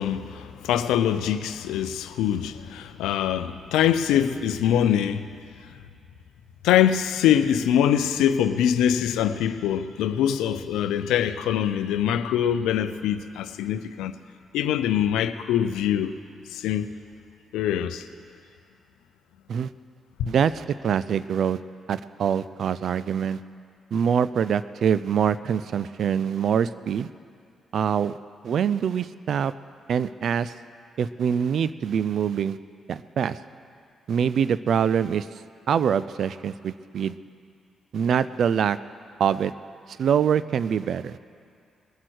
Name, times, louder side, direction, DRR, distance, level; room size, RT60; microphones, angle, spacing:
voice 1, 0.0-5.4 6.6-14.1 14.5-16.1 16.5-16.9 17.5-18.1 20.2-20.3, left 10 dB, 80° left, 0.5 m, -23 dB
voice 2, 20.3-21.6 21.9-23.4 23.9-27.1 27.7-28.1 28.4-29.5 29.9-30.5 31.0-32.6 32.9-33.4 34.1-35.3 35.7-37.2 37.9-38.8 39.2-39.5 40.0-41.2, right 8 dB, 65° right, 0.4 m, -24 dB
21.0 x 7.6 x 6.3 m
hypercardioid pair, 45°, 0 cm